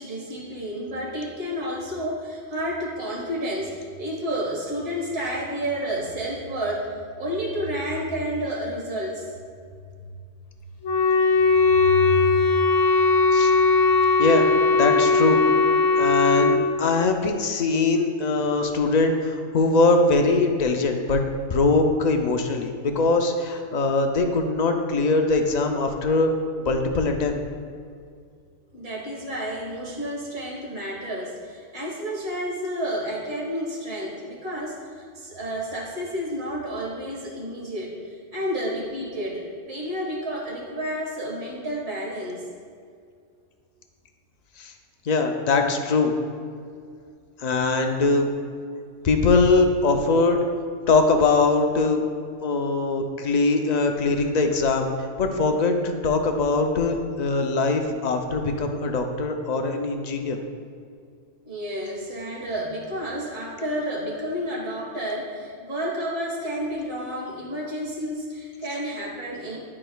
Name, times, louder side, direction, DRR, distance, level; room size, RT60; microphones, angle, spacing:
voice 1, 0.0-6.9 7.2-9.4 11.6-12.4 28.7-42.4 61.4-69.6, equal, 55° right, -4 dB, 1.7 m, -30 dB
Wind instrument woodwind instrument, 10.8-16.6, left 3 dB, 80° left, 1.1 m, -19 dB
voice 2, 14.2-15.4 16.0-21.2 21.5-26.3 26.6-27.4 44.6-44.7 45.0-46.1 47.4-48.3 49.0-50.4 50.9-52.0 52.4-54.9 55.2-60.4, left 3 dB, 55° left, 4 dB, 0.5 m, -22 dB
11.0 x 4.8 x 2.3 m, 2.2 s
omnidirectional pair, 1.2 m